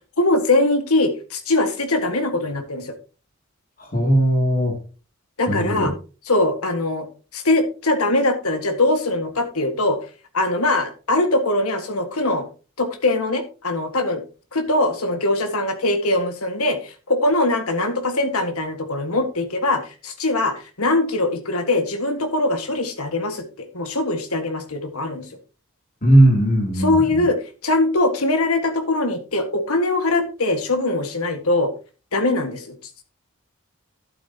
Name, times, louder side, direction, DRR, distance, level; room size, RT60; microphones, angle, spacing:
voice 1, 0.2-2.9 5.4-5.9 6.3-7.1 7.3-10.0 10.3-12.5 12.8-14.2 14.5-25.3 26.8-31.7 32.1-32.7, left 2 dB, 85° left, 7 dB, 1.7 m, -22 dB
voice 2, 3.8-4.8 5.5-5.9 26.0-27.2, right 1 dB, 40° left, 2 dB, 2.6 m, -18 dB
11.5 x 8.8 x 2.9 m, 0.34 s
head